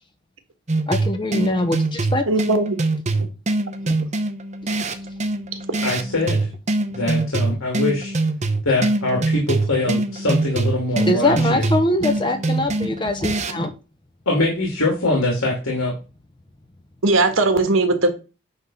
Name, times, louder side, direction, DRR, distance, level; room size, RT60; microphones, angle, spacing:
sound 1, 0.7-13.7, right 2 dB, 35° right, 0.9 m, -23 dB
voice 1, 0.9-2.2 11.1-13.7, left 1 dB, 20° left, 0.8 m, -22 dB
voice 2, 2.3-2.8 17.0-18.1, right 2 dB, 75° right, 1.6 m, -18 dB
voice 3, 5.8-6.5 6.9-8.1 8.6-11.6 14.3-15.9, left 2 dB, 85° left, 2.8 m, -23 dB
9.8 x 3.6 x 5.7 m
head